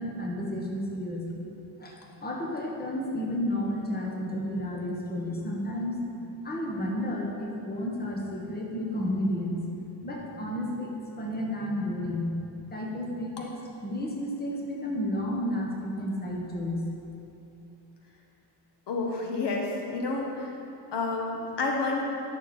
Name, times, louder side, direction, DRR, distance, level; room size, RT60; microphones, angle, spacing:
voice 1, 0.0-1.4 1.8-6.0 6.4-9.6 10.0-12.3 12.7-13.6 13.8-16.8, left 1 dB, 20° left, -1 dB, 1.3 m, -32 dB
voice 2, 18.9-20.5 20.9-22.0, left 3 dB, 70° left, 0 dB, 1.4 m, -29 dB
11.5 x 6.4 x 4.3 m, 2.8 s
cardioid pair, 120°, 42 cm